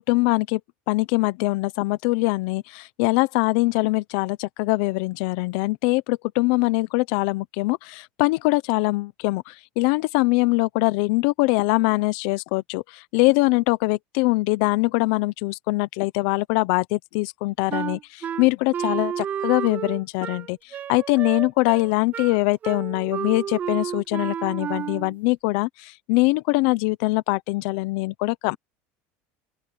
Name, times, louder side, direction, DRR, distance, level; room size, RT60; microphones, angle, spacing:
voice 1, 0.1-0.6 0.9-28.6, left 23 dB, 70° left, 0.8 m, -23 dB
Wind instrument woodwind instrument, 17.7-25.2, right 9 dB, 30° right, 0.6 m, -31 dB
open air
supercardioid pair, 140°, 6 cm